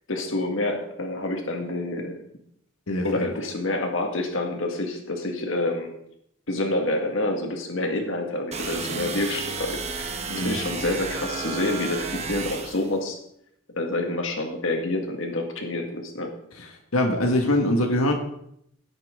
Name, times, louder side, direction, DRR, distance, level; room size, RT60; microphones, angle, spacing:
voice 1, 0.1-2.2 3.0-5.9 6.5-13.2 13.7-16.3, left 2 dB, 65° left, 3 dB, 1.8 m, -28 dB
voice 2, 2.9-3.2 10.3-10.6 16.6-18.1, left 1 dB, 85° left, 2 dB, 1.7 m, -23 dB
sound 1, 8.5-12.9, right 4 dB, 30° right, 1.2 m, -32 dB
17.5 x 8.9 x 3.7 m, 0.73 s
head